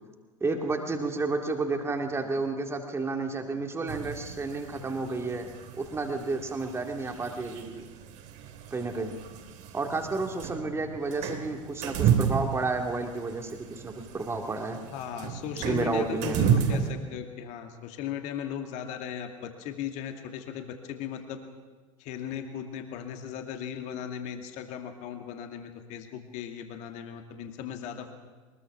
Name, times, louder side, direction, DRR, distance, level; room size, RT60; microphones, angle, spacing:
voice 1, 0.4-5.5 5.8-7.8 8.7-9.2 9.7-14.8 15.6-16.9, right 3 dB, 15° right, 4 dB, 2.2 m, -31 dB
sound 1, 3.9-16.9, right 8 dB, 45° right, 2.4 m, -32 dB
voice 2, 14.9-21.4 22.0-28.1, left 9 dB, 45° left, 5 dB, 2.3 m, -37 dB
23.0 x 21.0 x 6.0 m, 1.3 s
figure-of-eight pair, 80°, 17 cm